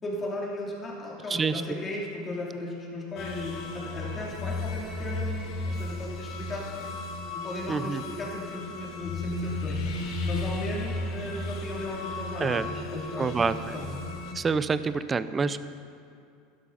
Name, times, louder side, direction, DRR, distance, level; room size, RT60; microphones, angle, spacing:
voice 1, 0.0-6.8 7.3-13.9, left 2 dB, 25° left, -3 dB, 3.0 m, -36 dB
voice 2, 1.3-1.6 7.7-8.0 12.4-12.7 13.2-13.5 14.3-15.6, right 5 dB, 20° right, 13 dB, 0.5 m, -27 dB
sound 1, 3.2-14.3, left 2 dB, 50° left, 1.6 m, -34 dB
11.5 x 11.5 x 5.8 m, 2.4 s
supercardioid pair, 125°, 0 cm